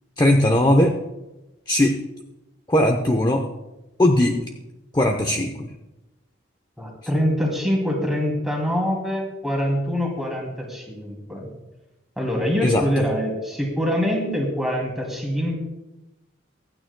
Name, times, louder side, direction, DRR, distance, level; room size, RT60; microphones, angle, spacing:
voice 1, 0.2-0.9 1.7-2.0 2.7-3.4 4.0-4.4 4.9-5.7 12.6-12.8, left 1 dB, 20° left, 4 dB, 0.7 m, -18 dB
voice 2, 6.8-11.5 12.2-15.6, equal, ahead, -2 dB, 2.6 m, -24 dB
24.5 x 9.0 x 2.2 m, 1.0 s
head